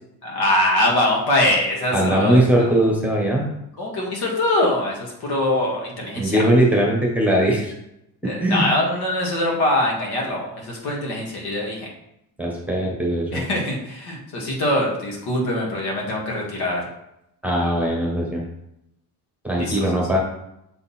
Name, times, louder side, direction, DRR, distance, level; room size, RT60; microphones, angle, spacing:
voice 1, 0.2-2.7 3.8-6.4 8.2-11.9 13.3-16.8 19.6-20.0, left 1 dB, 75° left, -2 dB, 2.1 m, -23 dB
voice 2, 1.9-3.5 6.1-7.7 8.4-8.7 12.4-13.4 17.4-18.4 19.4-20.2, right 1 dB, 5° right, -2 dB, 1.2 m, -20 dB
6.9 x 3.9 x 4.3 m, 0.82 s
cardioid pair, 165°, 39 cm